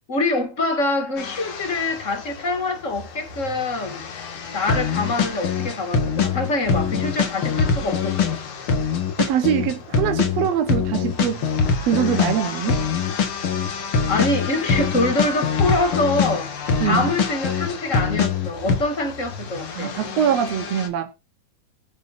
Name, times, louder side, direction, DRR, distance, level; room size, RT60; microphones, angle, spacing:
voice 1, 0.1-4.0 4.5-8.4 14.1-16.5 16.8-20.0, left 2 dB, 25° left, 2.3 m, -25 dB
sound 1, 1.2-20.9, left 6 dB, 70° left, 3.4 m, -35 dB
sound 2, 4.7-16.4 16.7-18.8, left 6 dB, 50° left, 2.4 m, -22 dB
voice 2, 9.2-11.4 11.9-12.8 16.8-17.1 19.8-21.1, right 9 dB, 65° right, 2.2 m, -23 dB
20.0 x 10.5 x 2.7 m
omnidirectional pair, 3.5 m